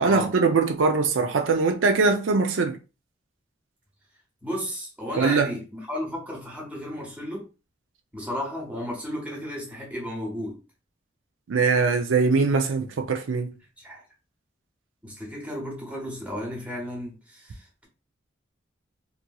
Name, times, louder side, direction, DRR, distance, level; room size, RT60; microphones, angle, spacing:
voice 1, 0.0-2.8 5.2-5.5 11.5-13.5, right 4 dB, 85° right, 0.5 m, -22 dB
voice 2, 4.4-7.4 8.1-10.5 13.8-14.0 15.0-17.9, equal, 10° right, 0.9 m, -34 dB
2.9 x 2.6 x 2.2 m
head